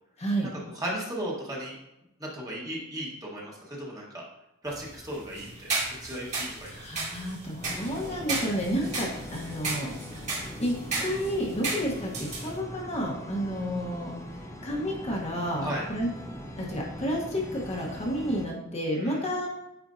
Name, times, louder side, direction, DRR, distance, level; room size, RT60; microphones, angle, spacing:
voice 1, 0.2-0.5 6.6-9.9 10.6-14.1 14.6-16.1 16.6-19.5, equal, 30° left, -3 dB, 1.2 m, -31 dB
voice 2, 0.7-1.8 2.2-4.2 4.6-5.7 6.0-6.7 15.6-15.9 19.0-19.2, right 1 dB, 15° right, -4 dB, 1.5 m, -35 dB
sound 1, 4.7-12.6, right 3 dB, 35° right, 2.1 m, -35 dB
sound 2, 7.6-18.5, left 1 dB, 15° left, 0.6 m, -41 dB
9.0 x 4.4 x 2.7 m, 0.88 s
head